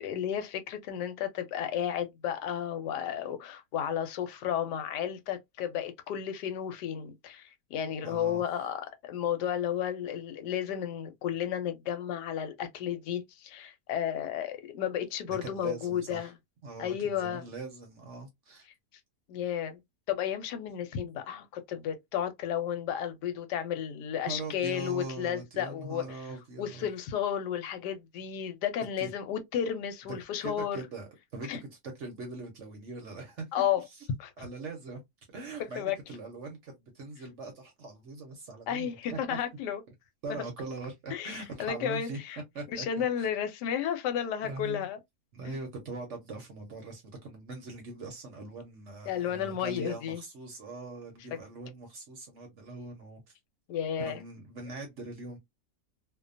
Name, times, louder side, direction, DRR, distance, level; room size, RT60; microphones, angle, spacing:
voice 1, 0.0-16.3 16.8-17.4 19.3-19.8 20.1-26.2 26.6-30.8 31.5-31.6 33.5-33.8 34.2-34.3 35.8-36.0 38.7-39.8 40.3-40.4 41.1-42.4 42.7-45.0 45.4-45.6 49.1-50.2 53.7-54.2, left 9 dB, 80° left, 1.2 m, -33 dB
voice 2, 8.0-8.4 15.3-16.3 16.6-18.7 24.3-26.9 29.0-29.1 30.4-31.7 31.9-33.5 34.4-35.0 35.3-39.4 40.2-42.2 42.5-43.3 44.4-44.9 45.3-53.2 54.0-55.4, right 3 dB, 55° right, 0.9 m, -41 dB
2.7 x 2.2 x 2.4 m
omnidirectional pair, 1.8 m